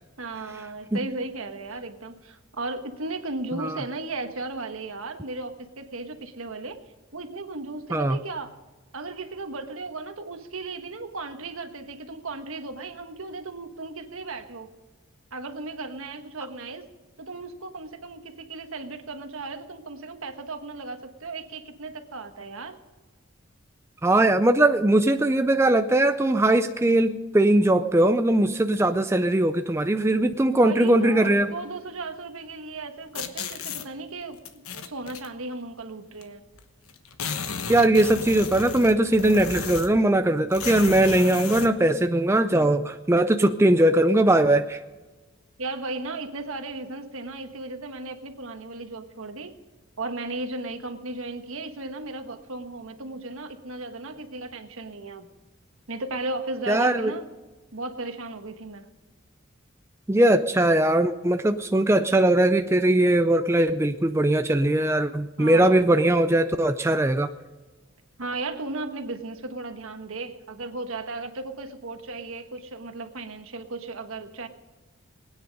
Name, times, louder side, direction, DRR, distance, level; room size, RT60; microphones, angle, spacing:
voice 1, 0.2-6.8 7.1-8.5 8.9-14.7 15.3-16.9 17.2-22.8 30.6-36.4 45.6-49.6 50.0-55.3 55.9-57.2 57.7-58.9 65.4-65.9 68.2-74.5, right 2 dB, 70° right, 7 dB, 1.3 m, -35 dB
voice 2, 24.0-31.5 37.7-44.8 56.7-57.1 60.1-67.3, right 1 dB, 10° right, 8 dB, 0.4 m, -20 dB
sound 1, 33.1-33.9 34.4-35.3 36.2-36.3 36.5-36.6 36.9-40.0 40.5-41.7, left 5 dB, 80° left, 1.1 m, -33 dB
20.5 x 9.6 x 5.3 m, 1.3 s
head